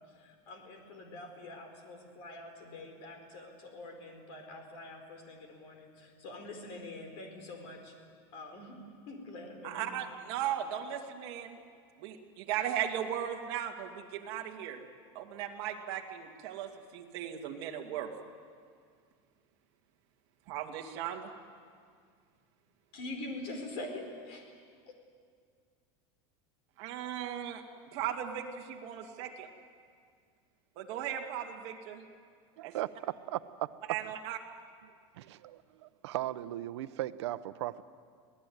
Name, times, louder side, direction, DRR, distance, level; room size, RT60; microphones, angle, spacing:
voice 1, 0.0-8.0 8.3-8.8 9.1-10.0 22.9-24.6 24.9-25.0, left 2 dB, 45° left, 4 dB, 4.5 m, -45 dB
voice 2, 9.6-11.6 12.0-14.8 15.1-18.1 20.5-21.3 26.8-27.6 27.9-29.5 30.8-32.0 32.6-32.7 33.9-34.4, right 10 dB, 45° right, 1 dB, 2.4 m, -37 dB
voice 3, 32.6-34.2 34.8-37.8, right 14 dB, 90° right, 13 dB, 0.9 m, -38 dB
26.0 x 18.0 x 9.5 m, 2.1 s
supercardioid pair, 175°, 14 cm